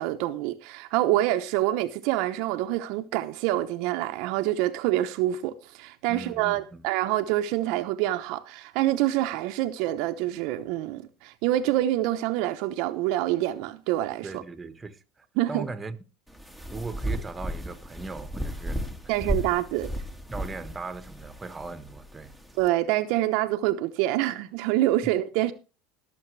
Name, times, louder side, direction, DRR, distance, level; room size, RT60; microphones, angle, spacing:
voice 1, 0.0-14.4 15.4-15.6 19.1-19.9 22.6-25.5, right 14 dB, 70° right, 0.9 m, -26 dB
voice 2, 6.1-6.8 14.2-16.0 16.7-18.9 20.3-22.3, right 3 dB, 15° right, 1.4 m, -38 dB
sound 1, 16.3-22.7, equal, 5° left, 1.7 m, -34 dB
21.0 x 7.1 x 3.3 m
supercardioid pair, 110°, 0 cm